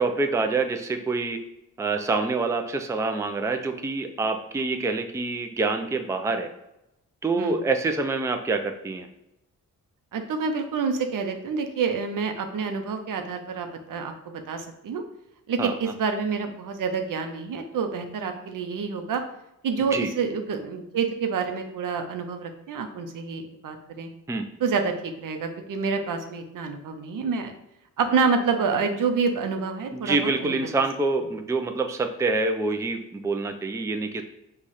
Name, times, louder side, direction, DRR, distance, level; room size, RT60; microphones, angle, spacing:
voice 1, 0.0-1.4 1.8-6.5 7.2-9.1 15.6-15.7 19.9-20.1 24.3-24.5 29.9-34.2, right 3 dB, 10° right, 5 dB, 0.4 m, -26 dB
voice 2, 10.1-15.0 15.5-19.2 19.6-24.1 24.6-27.5 28.0-30.6, right 5 dB, 70° right, 6 dB, 0.7 m, -28 dB
4.7 x 2.4 x 4.1 m, 0.87 s
cardioid pair, 80°, 33 cm